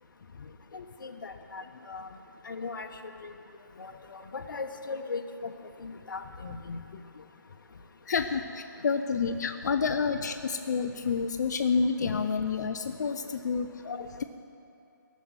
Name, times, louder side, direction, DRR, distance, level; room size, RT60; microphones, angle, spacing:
voice 1, 0.7-2.1 2.4-3.3 3.8-5.5 5.8-6.8, left 4 dB, 70° left, 4 dB, 1.2 m, -39 dB
voice 2, 8.1-14.2, left 5 dB, 55° left, 7 dB, 0.7 m, -29 dB
17.0 x 7.6 x 9.6 m, 2.7 s
hypercardioid pair, 155°, 11 cm